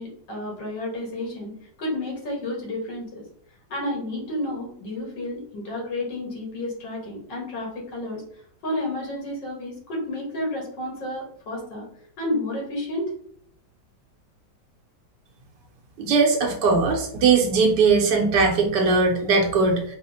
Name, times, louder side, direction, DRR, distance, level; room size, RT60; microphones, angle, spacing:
voice 1, 0.0-3.3 3.7-8.2 8.6-11.9 12.2-13.1, left 1 dB, 75° left, -2 dB, 1.9 m, -31 dB
voice 2, 16.0-19.8, right 4 dB, 75° right, 1 dB, 1.2 m, -19 dB
4.8 x 2.0 x 2.6 m, 0.63 s
omnidirectional pair, 2.0 m